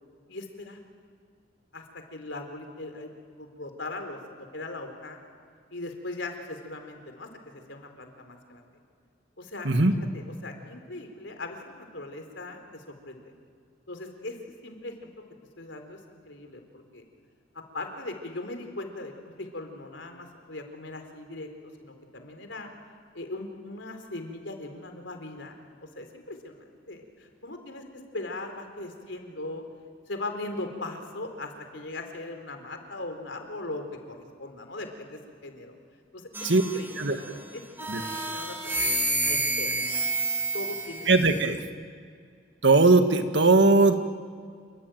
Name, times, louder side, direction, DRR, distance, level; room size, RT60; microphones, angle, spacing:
voice 1, 0.3-0.8 1.7-5.2 5.7-8.7 9.4-9.7 10.1-13.2 13.9-14.4 14.6-15.1 15.6-17.0 17.5-22.7 23.1-27.8 28.1-29.6 30.1-35.8 36.1-38.6 39.2-39.7 40.5-41.1 41.3-41.5, left 2 dB, 70° left, 5 dB, 4.1 m, -39 dB
sound 1, 36.3-37.3 37.8-41.4, right 2 dB, 10° right, 3.0 m, -29 dB
voice 2, 41.1-41.6 42.6-43.9, right 3 dB, 65° right, 7 dB, 1.9 m, -19 dB
29.0 x 22.5 x 9.3 m, 2.2 s
head